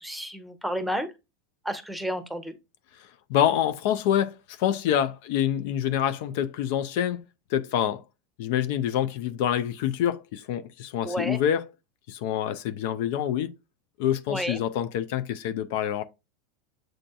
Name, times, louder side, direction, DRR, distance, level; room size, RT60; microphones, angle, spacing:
voice 1, 0.0-1.1 1.6-2.5 11.0-11.4 14.3-14.6, equal, ahead, 0.8 m, -31 dB
voice 2, 3.3-7.2 7.5-8.0 8.4-11.6 12.1-13.5 14.0-16.0, left 10 dB, 65° left, 0.4 m, -26 dB
7.6 x 2.6 x 2.3 m
hypercardioid pair, 105°, 0 cm